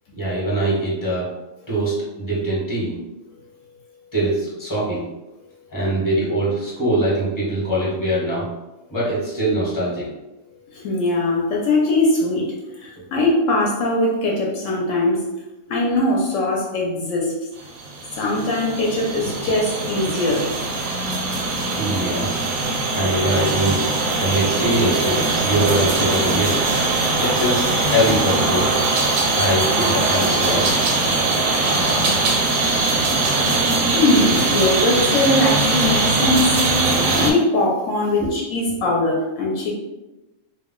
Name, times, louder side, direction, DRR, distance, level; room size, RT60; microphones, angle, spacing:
voice 1, 0.1-1.3 1.7-3.0 4.1-5.0 5.7-8.5 8.9-10.1 21.8-22.3 22.9-23.8 24.2-26.5 27.2-28.7 29.3-30.7 38.2-38.3 38.6-38.8, right 1 dB, 15° left, -7 dB, 0.9 m, -22 dB
voice 2, 10.7-12.5 12.8-15.2 15.7-17.3 18.1-20.5 33.9-36.6 37.2-39.7, left 2 dB, 75° left, -2 dB, 0.9 m, -20 dB
sound 1, 17.7-37.3, right 3 dB, 90° right, 1.0 m, -21 dB
2.3 x 2.1 x 3.6 m, 1.0 s
omnidirectional pair, 1.4 m